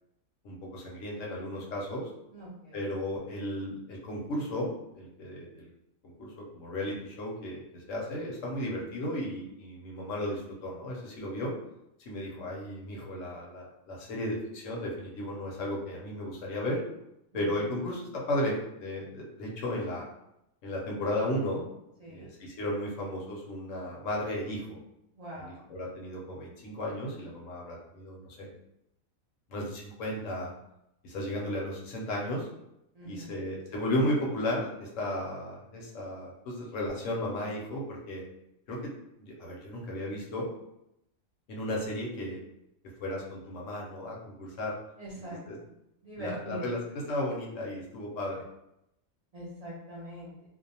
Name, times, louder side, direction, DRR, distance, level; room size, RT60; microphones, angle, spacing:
voice 1, 0.4-2.1 2.7-5.7 6.2-11.5 12.1-16.8 17.3-20.0 20.6-21.6 22.1-24.8 25.4-28.5 29.5-30.5 31.0-32.5 33.1-38.2 38.7-38.9 39.2-40.5 41.5-42.4 43.0-44.7 45.5-45.6 46.2-48.5, left 1 dB, 70° left, -3 dB, 1.0 m, -34 dB
voice 2, 2.3-2.9 17.3-17.5 22.0-22.3 25.1-25.6 32.9-33.3 45.0-45.4 46.0-46.6 49.3-50.3, right 1 dB, 60° right, -7 dB, 0.4 m, -42 dB
2.5 x 2.1 x 2.7 m, 0.84 s
omnidirectional pair, 1.4 m